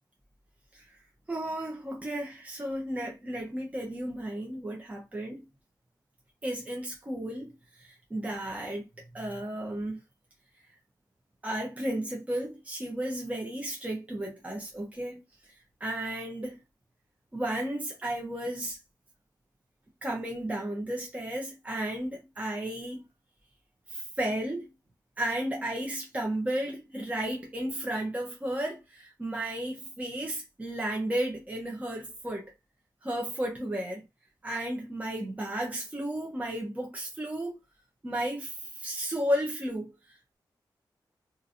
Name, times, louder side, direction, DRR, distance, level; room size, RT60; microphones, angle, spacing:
voice 1, 1.3-5.5 6.4-7.5 7.8-8.9 9.1-10.0 11.4-15.2 15.8-16.6 17.3-18.8 20.0-23.1 23.9-24.7 25.2-32.5 33.0-34.0 34.4-37.6 38.0-40.2, right 1 dB, 20° right, 0.9 m, -33 dB
2.8 x 2.6 x 2.7 m
wide cardioid pair, 115°, 8 cm